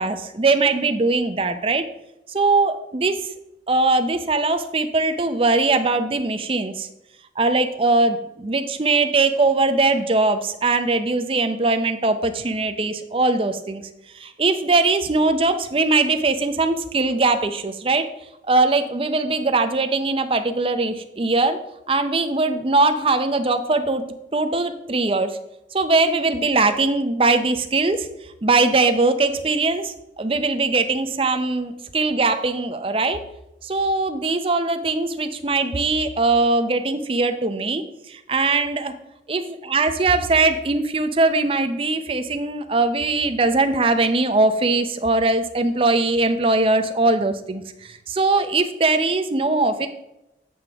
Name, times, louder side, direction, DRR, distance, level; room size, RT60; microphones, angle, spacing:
voice 1, 0.0-1.8 2.3-3.3 3.7-6.9 7.4-13.8 14.1-18.1 18.5-21.6 21.9-25.4 25.7-28.1 28.4-33.2 33.6-39.0 39.3-49.9, right 3 dB, 30° right, 9 dB, 0.6 m, -21 dB
7.9 x 7.1 x 3.4 m, 0.87 s
head